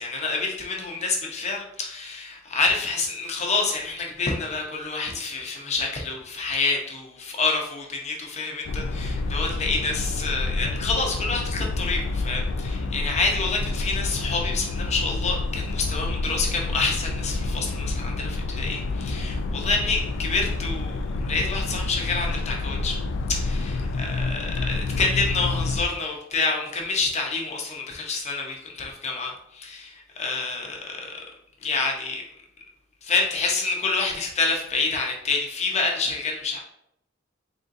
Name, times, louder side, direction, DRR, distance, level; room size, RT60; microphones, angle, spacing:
voice 1, 0.0-23.0 23.3-31.1 31.6-32.2 33.0-36.6, left 4 dB, 35° left, 0 dB, 0.8 m, -28 dB
sound 1, 8.7-25.9, left 3 dB, 65° left, 0.3 m, -28 dB
3.9 x 3.6 x 2.6 m, 0.75 s
head